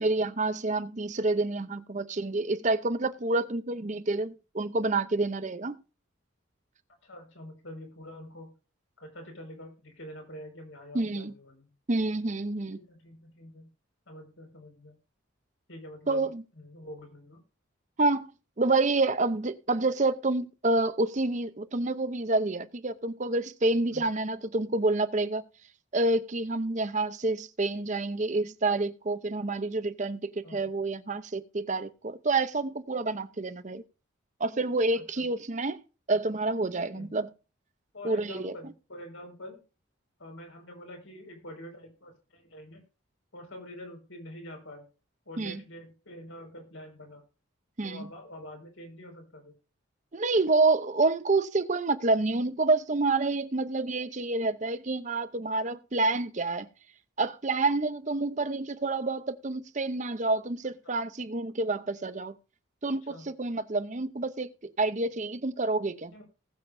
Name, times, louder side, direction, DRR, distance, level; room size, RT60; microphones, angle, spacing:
voice 1, 0.0-5.8 10.9-11.3 11.9-12.8 16.1-16.4 18.0-18.3 18.6-25.5 25.9-33.8 34.4-35.8 36.1-37.3 38.0-38.5 45.4-45.6 47.8-48.1 50.1-56.7 57.2-62.4 62.8-64.5 64.8-66.1, right 2 dB, 35° right, 0.7 m, -28 dB
voice 2, 7.0-8.5 9.0-11.7 12.7-13.7 14.1-15.0 15.7-16.3 16.6-17.4 23.9-24.0 30.4-30.7 34.9-35.3 36.8-37.1 37.9-39.6 40.2-42.8 43.3-44.8 45.2-47.2 47.8-49.5 60.8-60.9 63.1-63.3 66.1-66.2, left 1 dB, 70° left, 5.0 m, -46 dB
19.5 x 7.5 x 2.6 m
head